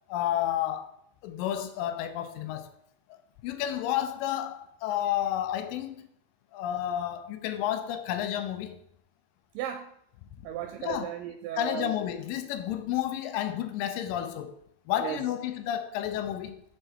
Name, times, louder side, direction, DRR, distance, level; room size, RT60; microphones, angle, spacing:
voice 1, 0.1-0.9 1.2-2.7 3.1-6.1 6.5-8.8 10.8-11.1 11.5-14.6 14.9-16.6, left 11 dB, 80° left, 2.1 m, -31 dB
voice 2, 9.5-9.9 10.4-11.9 15.0-15.2, right 10 dB, 80° right, 2.1 m, -35 dB
6.3 x 4.7 x 4.5 m
omnidirectional pair, 4.3 m